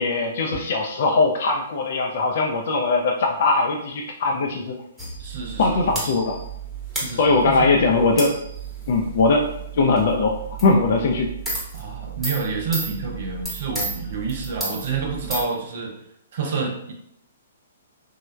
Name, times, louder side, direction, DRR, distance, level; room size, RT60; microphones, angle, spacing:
voice 1, 0.0-4.8 5.6-6.4 7.2-8.3 8.9-9.5 9.7-10.4 10.6-11.3, left 3 dB, 55° left, 1 dB, 0.3 m, -20 dB
sound 1, 5.0-15.5, right 3 dB, 5° right, 0.9 m, -33 dB
voice 2, 5.2-5.8 6.9-7.8 11.7-16.0 16.3-16.9, right 4 dB, 50° right, 2 dB, 0.5 m, -29 dB
3.2 x 2.1 x 2.2 m, 0.74 s
figure-of-eight pair, 120°, 0 cm